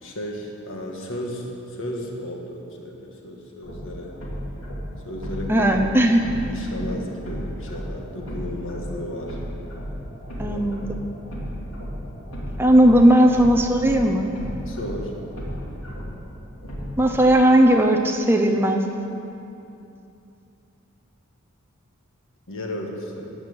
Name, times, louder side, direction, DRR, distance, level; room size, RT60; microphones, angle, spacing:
voice 1, 0.0-4.1 5.0-5.7 6.5-9.4 10.4-10.6 14.6-15.2 22.5-23.3, left 1 dB, 65° left, 0 dB, 1.7 m, -34 dB
sound 1, 3.6-17.3, equal, 85° left, 2.8 m, -34 dB
voice 2, 5.5-6.2 10.4-10.8 12.6-14.3 17.0-18.8, right 1 dB, 10° right, 3 dB, 0.7 m, -17 dB
13.5 x 5.9 x 8.8 m, 2.7 s
head